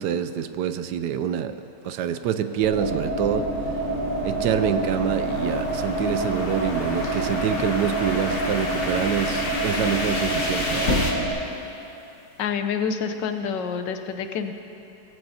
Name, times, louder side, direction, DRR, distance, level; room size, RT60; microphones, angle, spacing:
voice 1, 0.0-1.6 1.8-3.4 4.2-10.9, right 8 dB, 75° right, 10 dB, 1.1 m, -26 dB
sound 1, 2.0-11.1, left 2 dB, 35° left, 1.4 m, -33 dB
sound 2, 2.6-11.3, right 1 dB, 35° right, 3.9 m, -27 dB
sound 3, 5.3-12.4, left 2 dB, 65° left, 2.5 m, -36 dB
voice 2, 12.4-14.5, left 6 dB, 85° left, 8 dB, 1.4 m, -27 dB
18.5 x 15.5 x 2.8 m, 2.9 s
omnidirectional pair, 1.9 m